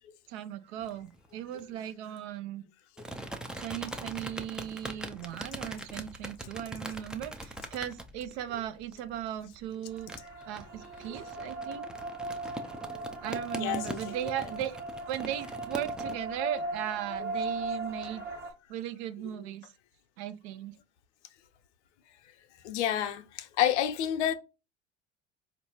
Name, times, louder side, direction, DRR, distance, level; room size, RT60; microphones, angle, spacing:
voice 1, 0.3-2.6 3.6-10.1 10.5-11.9 13.2-14.8 15.1-18.2 18.7-19.7 20.2-20.8, right 11 dB, 60° right, 0.6 m, -37 dB
sound 1, 0.8-1.6 3.0-16.1, right 1 dB, ahead, 0.3 m, -42 dB
sound 2, 9.9-18.5, right 2 dB, 30° right, 1.2 m, -38 dB
voice 2, 13.6-14.5 22.6-24.3, left 11 dB, 65° left, 0.7 m, -30 dB
4.5 x 2.5 x 2.9 m
figure-of-eight pair, 70°, 37 cm